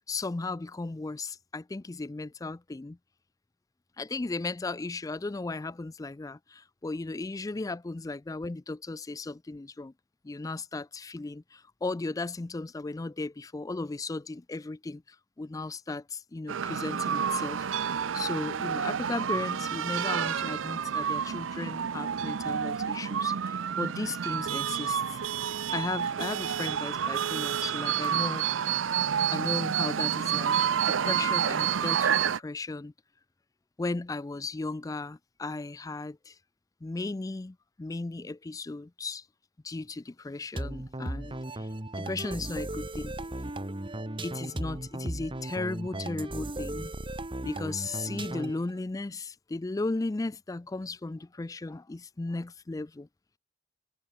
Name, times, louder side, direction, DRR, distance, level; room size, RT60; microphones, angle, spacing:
voice 1, 0.1-3.0 4.0-9.9 10.2-17.7 18.1-25.2 25.7-28.5 29.3-30.6 30.9-32.9 33.8-36.4 36.8-39.2 39.6-41.7 42.0-43.1 44.2-46.9 47.4-53.1, left 3 dB, 20° left, 0.4 m, -36 dB
sound 1, 16.5-32.4, right 8 dB, 90° right, 0.6 m, -29 dB
sound 2, 40.6-48.7, right 1 dB, 25° right, 1.5 m, -36 dB
head